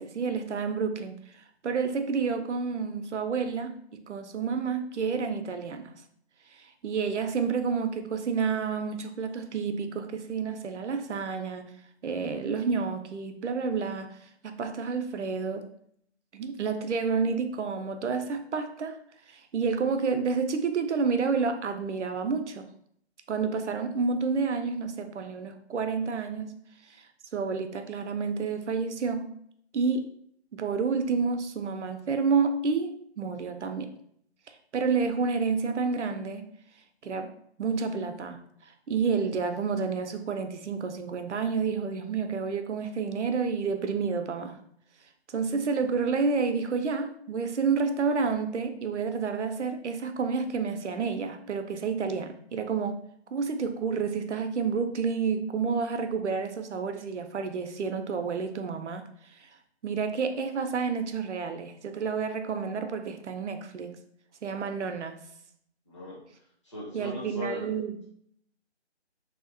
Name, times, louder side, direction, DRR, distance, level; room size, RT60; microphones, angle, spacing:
voice 1, 0.0-5.9 6.5-11.7 12.0-14.1 14.4-15.7 16.3-19.0 19.3-22.7 23.3-26.5 27.0-27.1 27.3-29.3 29.7-30.1 30.5-33.9 34.7-36.5 37.0-37.3 37.6-44.6 45.3-53.0 53.3-59.0 59.3-59.5 59.8-64.0 64.4-65.2 66.9-68.0, right 5 dB, 85° right, 7 dB, 0.5 m, -29 dB
voice 2, 65.9-66.2 66.6-67.7, equal, 25° left, -7 dB, 0.8 m, -38 dB
2.7 x 2.0 x 2.5 m, 0.68 s
figure-of-eight pair, 160°, 34 cm